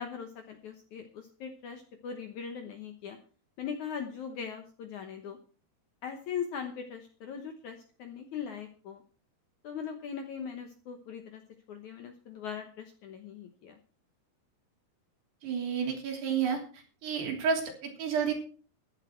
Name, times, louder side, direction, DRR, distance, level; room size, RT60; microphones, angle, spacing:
voice 1, 0.0-3.2 3.6-5.4 6.0-9.0 9.6-11.4 11.7-13.8, left 7 dB, 65° left, 6 dB, 2.0 m, -40 dB
voice 2, 15.4-16.6 17.0-18.3, right 6 dB, 75° right, 1 dB, 5.2 m, -30 dB
14.5 x 11.0 x 4.5 m, 0.40 s
omnidirectional pair, 4.8 m